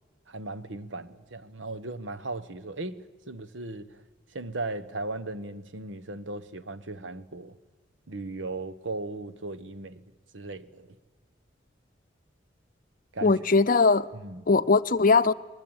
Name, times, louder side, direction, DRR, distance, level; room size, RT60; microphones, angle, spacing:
voice 1, 0.3-3.9 4.3-7.6 8.1-10.0 10.3-11.0 13.1-13.3 14.1-14.4, right 2 dB, 80° right, 1.2 m, -37 dB
voice 2, 13.2-14.1 14.5-15.3, left 4 dB, 45° left, 0.7 m, -20 dB
22.0 x 20.5 x 8.9 m
head